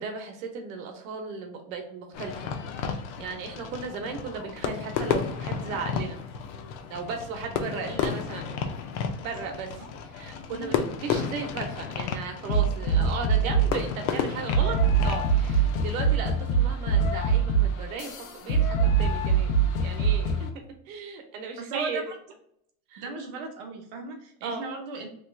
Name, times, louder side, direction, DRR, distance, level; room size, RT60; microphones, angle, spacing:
voice 1, 0.0-2.5 2.8-6.2 6.9-8.5 9.2-14.8 15.0-19.5 19.8-20.5 20.9-22.1 22.9-23.1 24.4-24.6, right 5 dB, 70° right, 4 dB, 0.9 m, -36 dB
Fireworks, 2.1-16.0, left 6 dB, 55° left, 0.5 m, -33 dB
sound 1, 12.5-13.8 14.5-20.5, right 5 dB, 85° left, 0.8 m, -23 dB
voice 2, 21.7-22.2 23.0-25.1, right 3 dB, 35° right, 3 dB, 0.4 m, -36 dB
3.0 x 2.3 x 3.2 m, 0.70 s
supercardioid pair, 175°, 42 cm